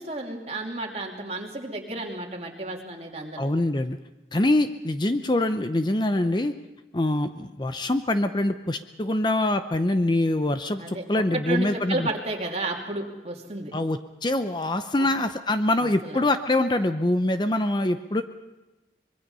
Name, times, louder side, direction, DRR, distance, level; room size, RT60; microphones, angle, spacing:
voice 1, 0.0-3.4 10.8-13.7 15.0-15.1 15.8-16.2, right 2 dB, 35° right, 1 dB, 2.8 m, -32 dB
voice 2, 3.4-4.0 4.3-6.6 6.9-12.1 13.7-18.2, left 1 dB, 25° left, 9 dB, 0.7 m, -24 dB
25.0 x 22.0 x 5.5 m, 1.1 s
head